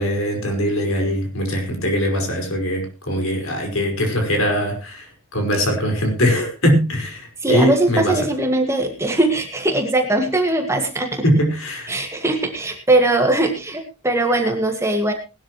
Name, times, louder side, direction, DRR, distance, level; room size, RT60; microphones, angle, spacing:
voice 1, 0.0-8.3 11.2-11.9, equal, 70° left, 5.3 m, -21 dB
voice 2, 7.4-11.2 11.9-15.1, right 2 dB, 15° right, 1.9 m, -20 dB
19.5 x 12.5 x 3.1 m
head